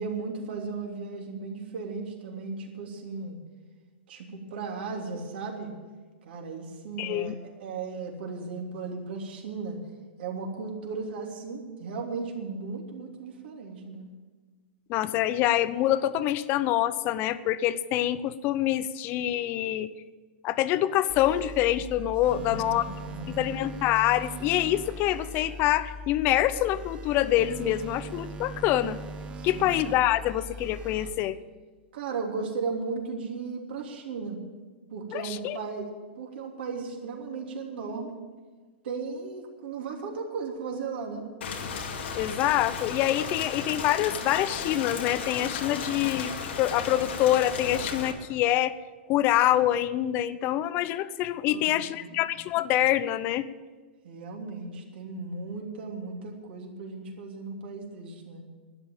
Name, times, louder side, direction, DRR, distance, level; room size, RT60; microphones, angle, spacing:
voice 1, 0.0-3.4 4.1-5.7 6.2-9.8 10.2-14.1 22.3-23.5 29.3-29.8 31.9-34.4 34.9-38.1 38.8-41.3 51.5-52.2 54.0-58.5, right 4 dB, 65° right, 1 dB, 3.2 m, -36 dB
voice 2, 7.0-7.3 14.9-19.9 20.4-22.9 23.3-29.0 29.4-31.4 35.1-35.6 42.1-46.3 46.6-48.7 49.1-53.4, left 13 dB, 35° left, 15 dB, 0.7 m, -26 dB
sound 1, 21.1-31.1, right 1 dB, 15° right, 1.4 m, -40 dB
Rain, 41.4-48.1, left 5 dB, 85° left, 2.3 m, -35 dB
12.0 x 9.5 x 9.0 m, 1.3 s
hypercardioid pair, 140°, 6 cm